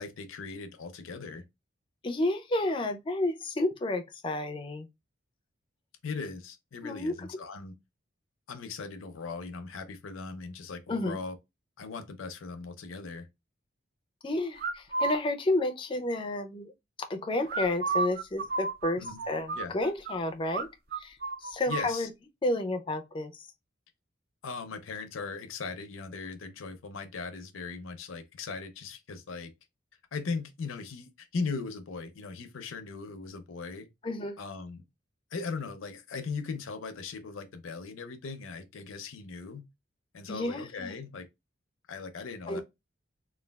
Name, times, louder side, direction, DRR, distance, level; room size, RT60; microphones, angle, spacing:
voice 1, 0.0-1.4 6.0-7.8 8.5-11.4 11.8-13.3 19.0-19.2 19.5-19.7 21.7-22.1 24.4-29.5 30.1-33.9 34.4-34.8 35.3-39.7 40.1-41.3 41.9-42.6, left 4 dB, 90° left, 0.5 m, -38 dB
voice 2, 2.0-4.9 6.8-7.1 10.9-11.2 14.2-16.7 17.1-20.7 21.0-22.1 22.4-23.5 34.0-34.4 40.3-40.9 42.5-42.6, left 2 dB, 25° left, 0.4 m, -31 dB
sound 1, 14.6-15.2 17.5-20.2 20.5-20.7 20.9-21.9, right 4 dB, 50° right, 0.5 m, -32 dB
3.1 x 2.3 x 2.2 m
head